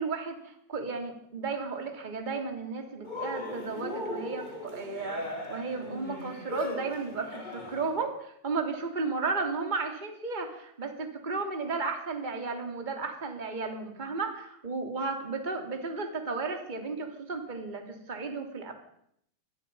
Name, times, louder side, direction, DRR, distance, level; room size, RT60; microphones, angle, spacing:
voice 1, 0.0-18.7, right 4 dB, 15° right, 4 dB, 2.5 m, -34 dB
Cheering, 3.0-8.0, left 2 dB, 15° left, 2.3 m, -38 dB
25.0 x 20.0 x 5.6 m, 0.73 s
omnidirectional pair, 4.7 m